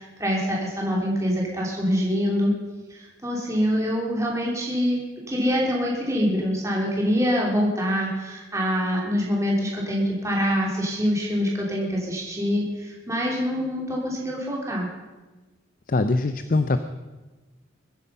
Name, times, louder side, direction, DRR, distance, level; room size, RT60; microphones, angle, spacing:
voice 1, 0.0-2.5 2.9-14.9, equal, 15° right, -3 dB, 3.2 m, -25 dB
voice 2, 15.9-16.8, left 2 dB, 45° left, 10 dB, 0.6 m, -22 dB
22.5 x 9.6 x 5.6 m, 1.2 s
head